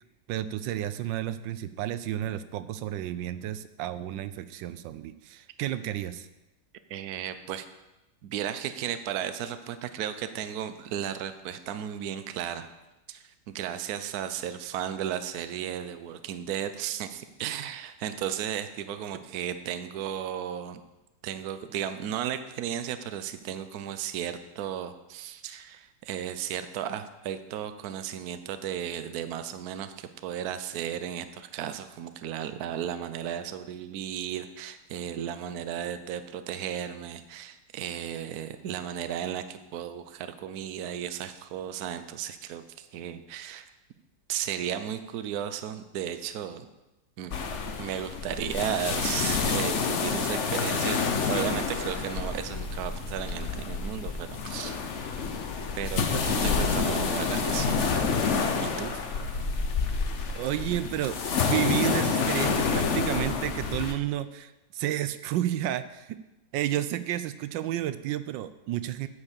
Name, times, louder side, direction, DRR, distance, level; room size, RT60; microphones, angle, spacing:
voice 1, 0.3-6.3 60.3-61.2 61.4-66.2 66.5-69.1, right 12 dB, 90° right, 13 dB, 1.3 m, -31 dB
voice 2, 6.9-7.7 8.2-12.7 13.1-20.8 21.2-43.7 44.3-46.7 47.2-47.3 47.8-54.8 55.8-57.9 58.6-59.0, right 10 dB, 65° right, 10 dB, 1.1 m, -34 dB
sound 1, 47.3-63.9, left 5 dB, 50° left, 1.0 m, -28 dB
9.8 x 6.3 x 7.3 m, 1.0 s
omnidirectional pair, 1.9 m